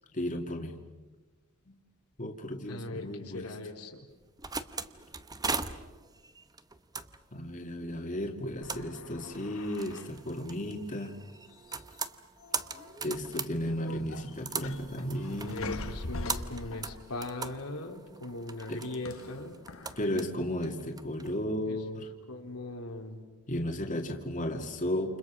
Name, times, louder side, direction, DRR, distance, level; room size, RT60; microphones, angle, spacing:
voice 1, 0.1-0.8 1.7-1.8 2.2-3.6 7.3-11.2 13.0-15.8 18.7-18.8 20.0-22.1 23.5-25.2, left 1 dB, 35° left, 3 dB, 2.1 m, -34 dB
voice 2, 2.7-4.0 15.4-19.5 21.7-21.8 22.3-23.2, left 2 dB, 90° left, 2 dB, 3.4 m, -39 dB
sound 1, 4.1-21.3, right 4 dB, 15° right, 0.9 m, -40 dB
sound 2, 8.6-10.3 11.5-12.1 12.4-13.0 13.4-17.3 19.1-20.0, left 3 dB, 65° left, 1.3 m, -43 dB
29.5 x 28.5 x 6.1 m, 1.2 s
head